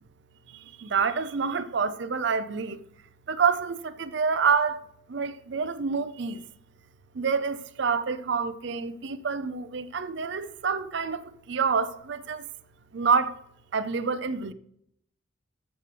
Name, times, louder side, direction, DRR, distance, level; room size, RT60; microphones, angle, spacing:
voice 1, 0.5-2.8 3.3-6.4 7.1-12.5 12.9-13.4 13.7-14.5, right 5 dB, 60° right, 0.5 m, -27 dB
14.5 x 6.6 x 3.3 m
head